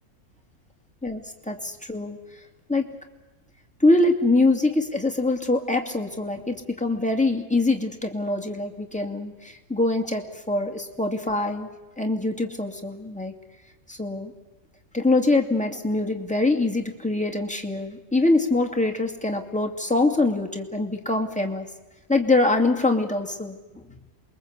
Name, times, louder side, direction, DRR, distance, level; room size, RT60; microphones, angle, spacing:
voice 1, 1.0-2.2 2.7-2.9 3.8-11.7 12.0-13.3 13.9-14.3 14.9-21.7 22.1-23.8, left 2 dB, 5° left, 2 dB, 2.4 m, -24 dB
28.0 x 23.0 x 8.3 m, 1.1 s
omnidirectional pair, 1.6 m